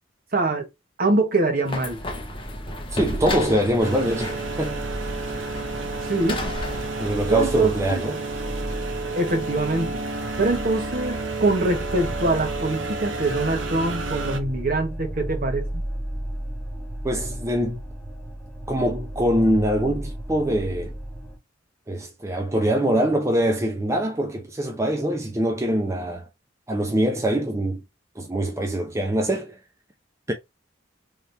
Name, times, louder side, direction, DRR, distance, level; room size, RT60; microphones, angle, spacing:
voice 1, 0.3-0.7 1.0-2.0 6.1-6.4 7.3-8.0 9.1-10.0 10.4-15.8, right 2 dB, 50° right, 1.2 m, -24 dB
sound 1, 1.6-6.9, left 2 dB, 30° left, 0.8 m, -34 dB
sound 2, 2.0-21.4, right 1 dB, 5° left, 1.2 m, -35 dB
voice 2, 2.9-4.8 7.0-8.2 17.0-17.8 18.7-21.0 21.9-26.3 26.7-27.8 28.2-29.6 30.3-30.4, right 1 dB, 15° right, 0.6 m, -23 dB
sound 3, 3.8-14.4, right 3 dB, 85° right, 0.9 m, -31 dB
3.6 x 2.9 x 3.3 m
head